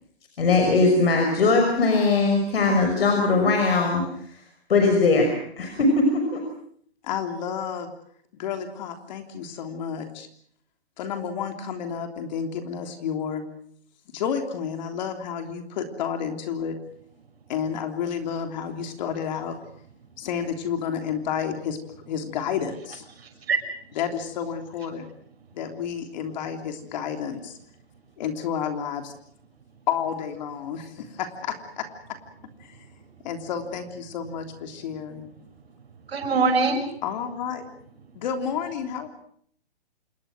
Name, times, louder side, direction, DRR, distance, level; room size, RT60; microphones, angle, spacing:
voice 1, 0.4-4.0 4.7-6.4, left 3 dB, 70° left, 4 dB, 6.0 m, -20 dB
voice 2, 7.0-7.9 8.4-10.3 11.0-13.5 14.1-16.8 17.5-19.6 20.2-21.8 22.1-23.0 23.9-25.1 25.5-27.6 28.2-29.1 29.9-31.9 32.6-32.8 33.2-35.3 37.0-37.7 38.1-39.1, left 7 dB, 45° left, 6 dB, 3.3 m, -30 dB
voice 3, 23.2-23.6 36.1-36.8, right 4 dB, 70° right, 3 dB, 6.0 m, -23 dB
27.5 x 21.5 x 6.3 m, 0.62 s
hypercardioid pair, 145°, 31 cm